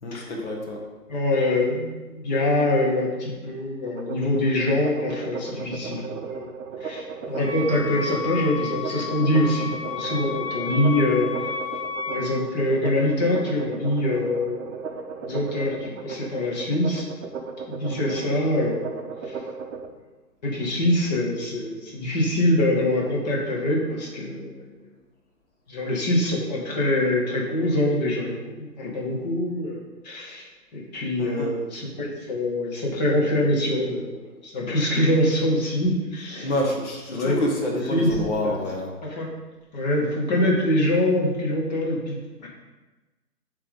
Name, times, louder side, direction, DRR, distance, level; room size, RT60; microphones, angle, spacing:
voice 1, 0.0-0.8 31.2-31.5 36.4-38.9, left 1 dB, 45° left, 0 dB, 1.1 m, -27 dB
voice 2, 1.1-6.5 6.8-11.3 12.1-14.7 15.3-17.0 17.7-18.9 19.2-19.4 20.4-24.8 25.7-30.4 30.7-36.5 37.1-37.3 37.9-38.2 39.0-39.3 39.7-42.5, left 1 dB, 25° left, -3 dB, 1.1 m, -24 dB
sound 1, 3.9-19.9, right 5 dB, 50° right, 0.7 m, -36 dB
Wind instrument woodwind instrument, 7.4-12.3, left 6 dB, 70° left, 1.6 m, -32 dB
8.0 x 3.4 x 3.8 m, 1.2 s
hypercardioid pair, 150°, 50 cm